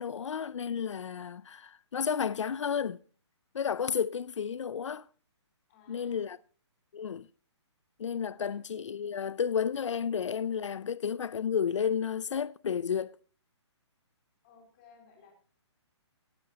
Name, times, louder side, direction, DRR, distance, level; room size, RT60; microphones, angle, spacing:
voice 1, 0.0-3.0 3.5-5.1 5.9-6.4 6.9-7.3 8.0-13.1, left 7 dB, 85° left, 0.5 m, -32 dB
voice 2, 5.7-6.3 8.3-8.6 14.4-15.4, left 5 dB, 20° left, 3.7 m, -58 dB
18.5 x 9.7 x 2.8 m
hypercardioid pair, 175°, 15 cm